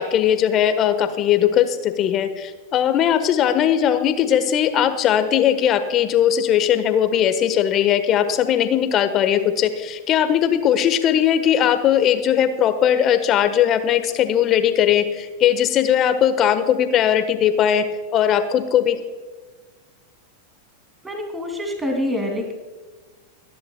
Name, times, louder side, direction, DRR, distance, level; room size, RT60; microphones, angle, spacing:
voice 1, 0.0-17.9 18.1-19.0, left 9 dB, 30° left, 10 dB, 1.2 m, -19 dB
voice 2, 21.0-22.5, left 1 dB, 10° right, 2 dB, 2.7 m, -26 dB
25.0 x 11.0 x 2.3 m, 1.4 s
figure-of-eight pair, 90°, 0 cm